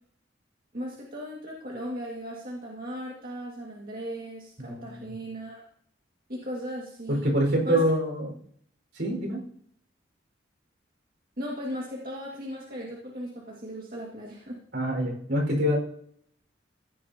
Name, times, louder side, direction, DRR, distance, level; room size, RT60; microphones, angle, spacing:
voice 1, 0.7-5.6 6.3-7.2 7.7-7.8 11.4-14.6, equal, 50° right, -3 dB, 2.1 m, -37 dB
voice 2, 4.6-5.1 7.1-8.4 8.9-9.4 14.7-15.8, equal, 70° right, 1 dB, 5.1 m, -26 dB
15.5 x 12.0 x 2.9 m, 0.63 s
head